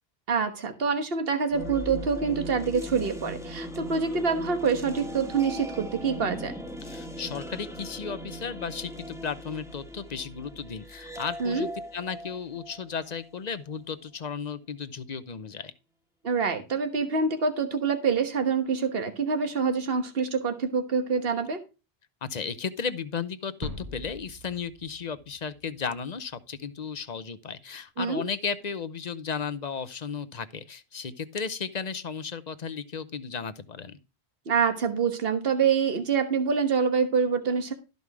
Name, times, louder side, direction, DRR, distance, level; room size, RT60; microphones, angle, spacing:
voice 1, 0.3-6.5 11.4-11.7 16.2-21.6 28.0-28.2 34.5-37.7, right 5 dB, 65° right, 1.5 m, -26 dB
sound 1, 1.5-13.6, equal, 5° right, 1.3 m, -39 dB
voice 2, 6.8-15.7 22.2-34.0, left 6 dB, 45° left, 0.9 m, -34 dB
sound 2, 23.6-26.5, equal, 20° right, 1.0 m, -42 dB
13.0 x 5.4 x 4.7 m
omnidirectional pair, 1.1 m